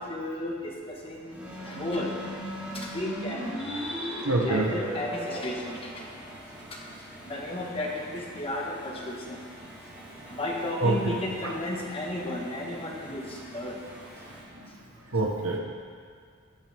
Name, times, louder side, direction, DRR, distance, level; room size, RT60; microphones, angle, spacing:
voice 1, 0.0-2.1 2.7-6.0 6.5-6.9 7.2-9.4 9.9-13.8 14.1-14.4 14.7-14.8, left 1 dB, 30° left, -2 dB, 1.6 m, -34 dB
sound 1, 1.3-14.4, equal, 10° right, 2.6 m, -40 dB
voice 2, 4.2-4.7 10.8-10.9 15.1-15.6, right 2 dB, 85° right, 1 dB, 1.4 m, -24 dB
14.5 x 8.8 x 3.7 m, 2.1 s
head